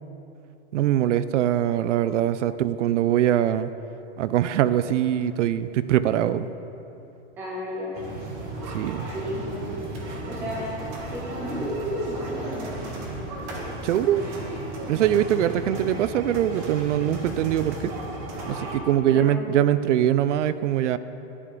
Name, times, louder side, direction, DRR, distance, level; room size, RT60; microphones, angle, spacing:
voice 1, 0.7-3.7 4.2-6.5 8.7-9.1 10.1-10.2 13.8-14.2 14.9-17.9 18.5-21.0, right 11 dB, 85° right, 14 dB, 0.5 m, -23 dB
voice 2, 7.4-8.1 9.1-9.8 10.3-10.8 11.1-12.8 19.0-19.4, equal, 5° right, -3 dB, 0.5 m, -32 dB
sound 1, 7.9-18.8, right 1 dB, 25° right, 1.1 m, -35 dB
10.0 x 9.9 x 3.8 m, 2.9 s
supercardioid pair, 180°, 36 cm